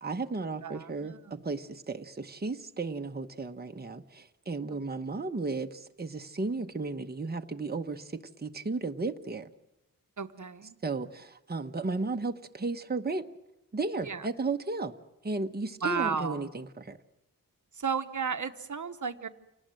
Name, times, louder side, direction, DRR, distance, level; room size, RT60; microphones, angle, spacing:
voice 1, 0.0-9.5 10.8-13.3 13.7-14.9 15.2-17.0, right 3 dB, 25° right, 5 dB, 1.0 m, -34 dB
voice 2, 0.6-1.4 10.2-10.8 14.0-14.3 15.8-16.4 17.7-19.3, right 6 dB, 55° right, 8 dB, 1.0 m, -33 dB
28.5 x 18.5 x 7.7 m, 0.90 s
wide cardioid pair, 110°, 35 cm